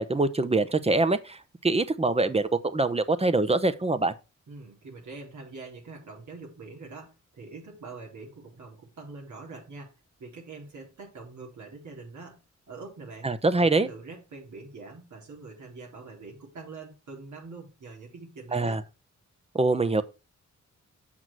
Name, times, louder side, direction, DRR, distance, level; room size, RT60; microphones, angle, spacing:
voice 1, 0.0-4.1 13.2-13.9 18.5-18.8 19.5-20.0, right 3 dB, 20° right, 0.9 m, -24 dB
voice 2, 4.5-13.3 13.6-18.8, right 3 dB, 75° right, 3.7 m, -44 dB
7.9 x 5.9 x 4.6 m
wide cardioid pair, 110°, 30 cm